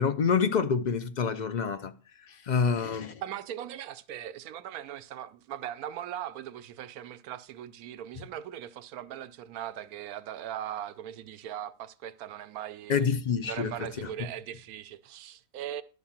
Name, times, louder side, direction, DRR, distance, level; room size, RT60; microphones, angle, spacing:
voice 1, 0.0-1.9 2.2-3.2 12.9-14.1, left 6 dB, 80° left, 0.4 m, -27 dB
voice 2, 3.2-13.1 13.4-15.8, right 11 dB, 90° right, 1.1 m, -39 dB
11.5 x 4.1 x 7.2 m
omnidirectional pair, 1.5 m